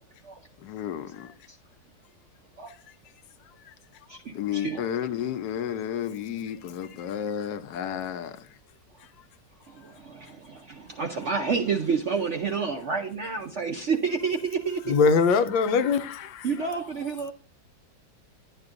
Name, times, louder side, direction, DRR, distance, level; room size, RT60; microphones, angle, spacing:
voice 1, 0.6-1.3 4.3-8.4, left 9 dB, 70° left, 1.1 m, -32 dB
voice 2, 4.1-4.9 9.7-15.0 16.4-17.3, right 5 dB, 65° right, 0.7 m, -29 dB
voice 3, 14.9-16.5, left 5 dB, 90° left, 1.4 m, -22 dB
10.5 x 9.6 x 2.5 m
omnidirectional pair, 2.0 m